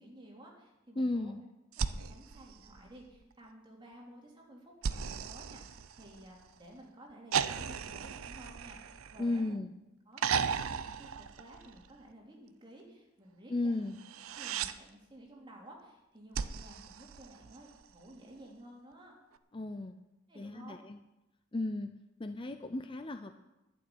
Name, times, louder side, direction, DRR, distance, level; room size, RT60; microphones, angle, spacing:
voice 1, 0.0-1.3 1.8-9.6 10.1-13.8 14.3-19.1 20.3-20.8, right 1 dB, 20° right, -2 dB, 3.0 m, -54 dB
voice 2, 1.0-1.4 9.2-9.7 13.5-14.0 19.5-20.0 20.4-21.0 21.5-23.3, left 2 dB, 25° left, 8 dB, 0.5 m, -35 dB
sound 1, 1.7-3.3 4.8-6.5 7.3-9.6 10.2-12.0 14.0-14.7 16.3-17.8 19.3-19.4, right 6 dB, 75° right, 0.6 m, -36 dB
12.0 x 6.9 x 9.6 m, 0.97 s
head